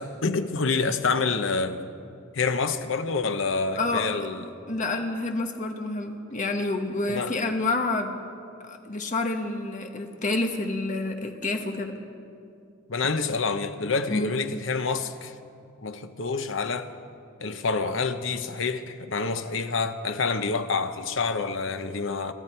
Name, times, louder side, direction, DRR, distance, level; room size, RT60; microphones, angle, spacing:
voice 1, 0.0-1.9 2.3-4.4 7.1-7.4 12.9-15.3 15.8-16.9 17.4-22.3, left 4 dB, 65° left, 0.8 m, -27 dB
voice 2, 3.7-4.1 4.7-8.1 8.6-12.0 14.1-14.3, left 2 dB, 40° left, 1.3 m, -28 dB
26.0 x 12.5 x 4.4 m
head